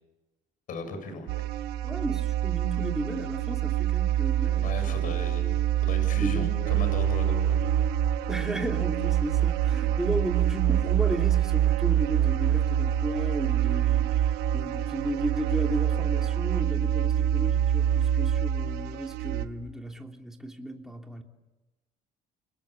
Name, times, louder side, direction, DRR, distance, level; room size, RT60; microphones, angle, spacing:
voice 1, 0.7-1.4 4.6-7.7, left 2 dB, 60° left, 7.5 m, -37 dB
sound 1, 1.3-19.5, right 11 dB, 90° right, 1.5 m, -26 dB
voice 2, 1.8-5.1 6.2-6.7 8.3-14.2 14.5-21.2, right 1 dB, 5° right, 3.2 m, -34 dB
29.5 x 23.5 x 8.3 m
cardioid pair, 110°, 16 cm